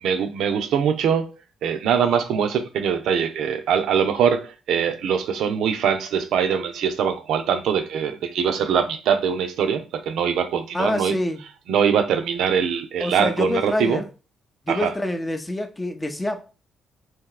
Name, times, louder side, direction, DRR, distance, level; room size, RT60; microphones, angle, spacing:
voice 1, 0.0-1.3 1.6-11.2 11.7-14.0 14.7-14.9, right 7 dB, 80° right, 0.6 m, -22 dB
voice 2, 10.7-11.4 13.0-14.0 14.7-16.5, left 1 dB, 10° left, 0.5 m, -26 dB
2.9 x 2.7 x 3.8 m
cardioid pair, 90°, 0 cm